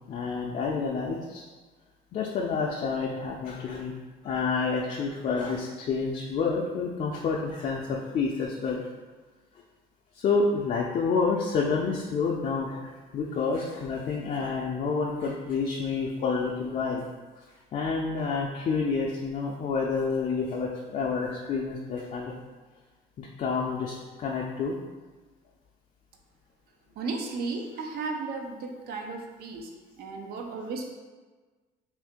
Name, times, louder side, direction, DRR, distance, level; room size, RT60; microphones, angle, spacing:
voice 1, 0.1-1.4 2.1-3.9 4.2-8.9 10.2-17.0 17.7-22.3 23.2-24.7, left 4 dB, 45° left, -2 dB, 0.4 m, -29 dB
voice 2, 27.0-29.7 30.0-30.8, right 3 dB, 65° right, 2 dB, 0.6 m, -34 dB
2.7 x 2.6 x 3.6 m, 1.3 s
cardioid pair, 110°, 17 cm